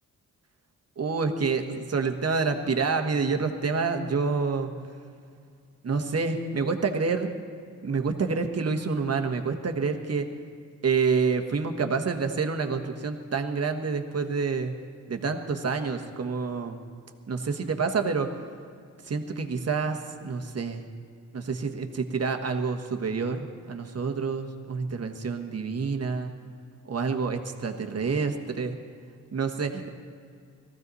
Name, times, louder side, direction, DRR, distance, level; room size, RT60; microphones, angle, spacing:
voice 1, 1.0-4.7 5.8-7.3 7.8-10.3 10.8-14.7 15.1-16.8 17.3-18.3 19.1-20.9 21.3-26.3 26.9-28.8 29.3-29.9, right 4 dB, 45° right, 5 dB, 1.3 m, -28 dB
19.0 x 14.5 x 4.1 m, 2.3 s
cardioid pair, 80°, 33 cm